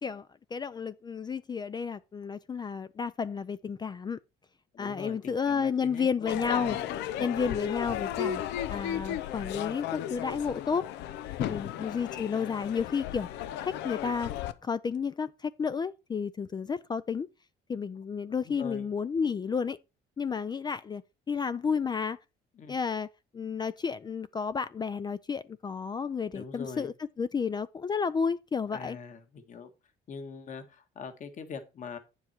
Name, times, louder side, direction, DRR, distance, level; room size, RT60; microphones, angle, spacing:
voice 1, 0.0-4.2 4.8-6.8 7.2-8.4 8.7-10.9 11.4-13.3 13.6-14.3 14.6-17.3 17.7-19.8 20.2-21.0 21.3-22.2 22.7-23.1 23.3-29.0, left 6 dB, 25° left, 0.4 m, -31 dB
voice 2, 4.7-7.0 18.4-18.9 22.5-22.8 26.3-26.9 28.7-29.7 30.1-32.0, left 5 dB, 45° left, 1.7 m, -43 dB
Crowd / Fireworks, 6.3-14.5, left 11 dB, 90° left, 0.7 m, -35 dB
9.2 x 7.3 x 4.5 m
cardioid pair, 110°, 17 cm